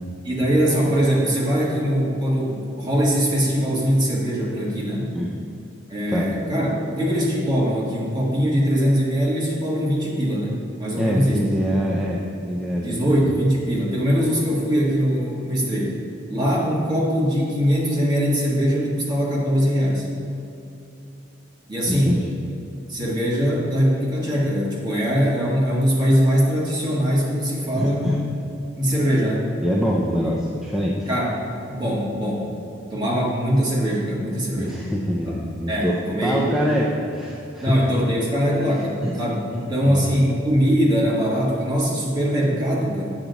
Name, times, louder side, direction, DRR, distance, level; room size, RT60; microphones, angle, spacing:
voice 1, 0.2-5.1 5.9-11.4 12.8-15.9 16.3-20.1 21.7-22.2 22.9-28.3 28.8-29.5 30.2-30.3 31.1-31.3 31.7-32.4 32.9-34.8 35.7-36.5 37.6-43.1, equal, 20° right, -5 dB, 1.6 m, -21 dB
voice 2, 11.0-12.2 12.5-13.1 21.9-22.3 27.8-28.2 29.6-31.1 34.6-37.8 39.0-39.1 39.5-40.0, equal, ahead, -4 dB, 0.5 m, -24 dB
8.8 x 6.0 x 4.0 m, 2.7 s
head